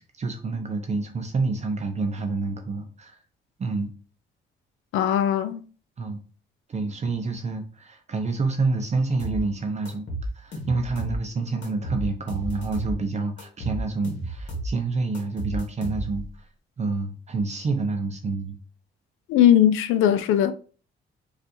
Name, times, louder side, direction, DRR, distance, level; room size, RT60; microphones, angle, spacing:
voice 1, 0.0-3.2 3.6-3.9 6.0-6.2 6.7-10.1 10.3-16.5 16.8-18.6, right 3 dB, 35° right, 0.5 m, -28 dB
voice 2, 4.9-5.6 19.3-20.5, left 10 dB, 90° left, 0.4 m, -19 dB
sound 1, 9.2-9.4 9.9-11.2 11.6-13.0 13.4-14.7 15.1-16.3, right 1 dB, 65° left, 1.2 m, -32 dB
4.1 x 2.4 x 2.6 m
cardioid pair, 90°, 20 cm